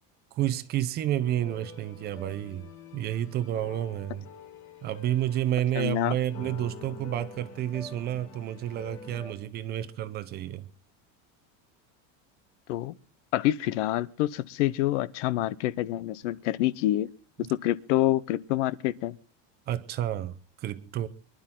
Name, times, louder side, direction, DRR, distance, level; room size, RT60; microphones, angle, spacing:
voice 1, 0.3-2.7 2.9-4.3 4.8-10.7 19.7-21.1, right 12 dB, 25° right, 0.7 m, -30 dB
sound 1, 1.2-9.3, left 4 dB, 30° left, 3.0 m, -47 dB
voice 2, 5.8-6.2 12.7-12.9 13.3-17.1 17.5-19.1, left 14 dB, 70° left, 0.9 m, -27 dB
24.5 x 11.5 x 3.8 m
cardioid pair, 180°, 37 cm